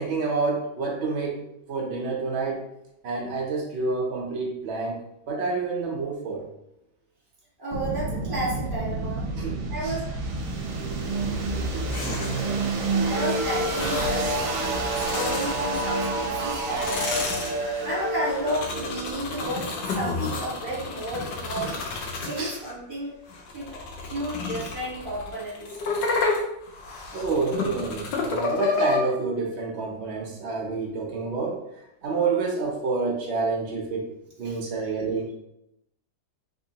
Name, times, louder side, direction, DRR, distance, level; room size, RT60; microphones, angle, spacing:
voice 1, 0.0-1.4 1.7-2.6 3.0-6.5 9.4-9.9 22.4-22.5 27.1-31.6 32.0-34.1 34.4-35.3, right 4 dB, 90° right, -2 dB, 0.5 m, -28 dB
voice 2, 7.6-9.3 9.7-10.0 13.1-14.6 15.1-17.2 17.8-21.8 22.2-23.1 23.5-23.8 24.1-25.7 34.4-34.6, right 1 dB, 30° right, -6 dB, 1.4 m, -32 dB
sound 1, 7.7-20.5, right 2 dB, 70° right, 1.2 m, -29 dB
sound 2, 11.9-12.6 13.6-14.3 14.8-16.0 16.5-22.7 23.3-29.0, left 4 dB, 75° left, 1.3 m, -31 dB
3.6 x 3.0 x 2.7 m, 0.82 s
omnidirectional pair, 2.0 m